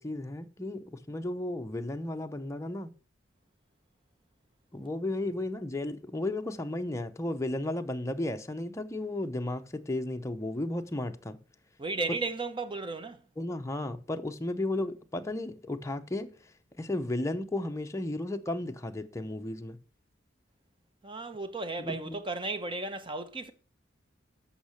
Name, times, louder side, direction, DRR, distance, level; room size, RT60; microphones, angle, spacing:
voice 1, 0.0-2.9 4.7-11.4 13.4-16.4 16.8-19.8 21.8-22.2, left 1 dB, 15° left, 0.7 m, -34 dB
voice 2, 11.8-13.2 21.0-23.5, right 3 dB, 25° right, 0.9 m, -34 dB
8.5 x 6.4 x 6.5 m
head